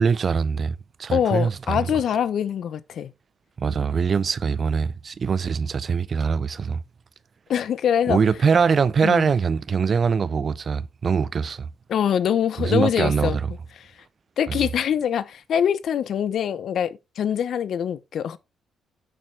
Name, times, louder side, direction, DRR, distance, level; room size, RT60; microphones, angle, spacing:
voice 1, 0.0-1.9 3.6-6.8 8.1-11.7 12.6-13.5 14.5-14.6, right 6 dB, 45° right, 0.5 m, -23 dB
voice 2, 1.1-3.1 7.5-8.2 9.0-9.3 11.9-13.4 14.4-18.4, left 9 dB, 65° left, 0.8 m, -24 dB
8.8 x 6.5 x 3.2 m
cardioid pair, 90°, 0 cm